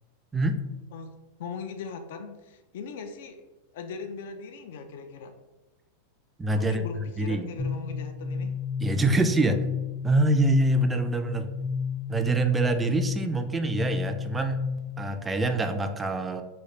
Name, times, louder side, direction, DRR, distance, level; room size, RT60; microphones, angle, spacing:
voice 1, 0.9-3.4 3.7-5.3 6.5-8.6, left 5 dB, 70° left, 7 dB, 0.4 m, -39 dB
voice 2, 6.4-6.8 7.2-7.5 8.8-9.6 10.0-11.5 12.1-14.6 15.0-16.4, right 2 dB, 10° right, 7 dB, 0.3 m, -25 dB
sound 1, 7.6-15.1, left 5 dB, 25° left, 0.6 m, -32 dB
3.2 x 2.3 x 3.9 m, 1.1 s
supercardioid pair, 135°, 0 cm